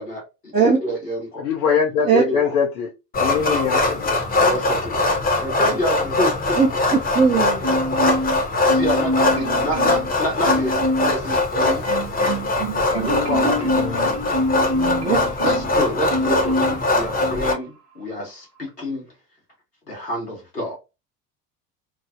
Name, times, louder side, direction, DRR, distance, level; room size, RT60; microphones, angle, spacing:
voice 1, 0.0-1.5 2.0-2.4 4.4-5.0 5.4-6.6 8.6-10.8 11.0-11.8 12.8-14.2 15.4-19.1 19.9-20.8, equal, 90° left, 1.3 m, -28 dB
voice 2, 1.4-2.9 3.2-4.3 13.8-14.2, left 6 dB, 70° left, 0.7 m, -23 dB
sound 1, 3.1-17.5, left 2 dB, 20° left, 0.8 m, -22 dB
voice 3, 6.6-8.2 14.7-15.2, right 5 dB, 20° right, 0.6 m, -20 dB
Marimba xylophone, 7.6-8.4 8.7-10.1 10.4-11.2 11.6-15.7 16.1-16.8 17.2-17.4, equal, 85° right, 0.7 m, -25 dB
3.1 x 2.0 x 2.4 m
figure-of-eight pair, 65°, 47 cm